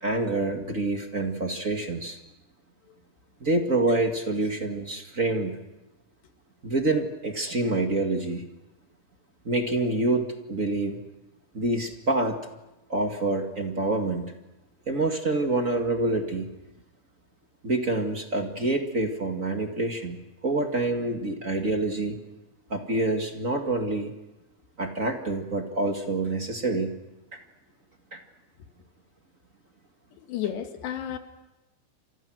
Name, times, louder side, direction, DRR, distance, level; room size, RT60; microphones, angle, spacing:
voice 1, 0.0-2.2 3.4-5.5 6.6-8.5 9.4-11.0 11.5-12.4 12.9-14.3 14.9-16.5 17.6-20.2 20.4-22.2 22.7-24.1 24.8-26.9 27.3-27.4 28.1-28.2, right 2 dB, 35° right, 4 dB, 1.2 m, -27 dB
voice 2, 30.2-31.2, left 10 dB, 90° left, 6 dB, 4.0 m, -32 dB
30.0 x 27.5 x 6.3 m, 0.99 s
omnidirectional pair, 4.7 m